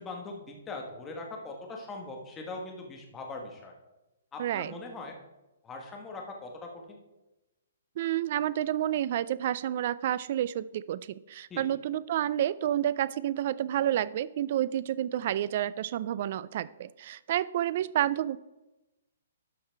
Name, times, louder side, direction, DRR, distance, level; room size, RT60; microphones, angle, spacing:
voice 1, 0.0-3.7 4.3-5.1 5.6-7.0 11.5-11.6, left 3 dB, 10° left, 1 dB, 1.3 m, -41 dB
voice 2, 4.4-4.7 8.0-18.4, right 11 dB, 40° right, 19 dB, 0.3 m, -30 dB
12.0 x 5.7 x 4.5 m, 1.0 s
hypercardioid pair, 170°, 0 cm